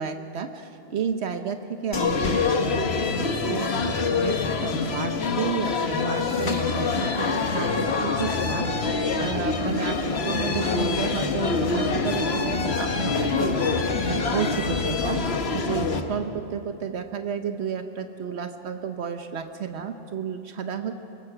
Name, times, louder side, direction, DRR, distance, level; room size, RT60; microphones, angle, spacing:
voice 1, 0.0-13.6 14.0-21.0, right 7 dB, 80° right, 7 dB, 1.1 m, -32 dB
sound 1, 1.9-16.0, left 4 dB, 70° left, 1.4 m, -25 dB
24.0 x 20.0 x 5.9 m, 2.9 s
omnidirectional pair, 1.1 m